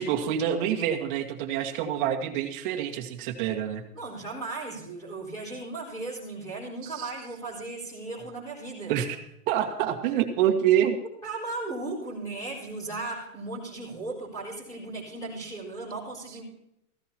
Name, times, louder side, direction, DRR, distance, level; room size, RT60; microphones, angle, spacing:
voice 1, 0.0-3.8 6.8-7.1 8.9-9.2 9.5-11.0, right 10 dB, 35° right, 4 dB, 1.7 m, -26 dB
voice 2, 3.9-9.0 11.2-16.4, right 2 dB, 10° left, -7 dB, 4.4 m, -36 dB
16.0 x 15.5 x 2.9 m, 0.80 s
supercardioid pair, 170°, 46 cm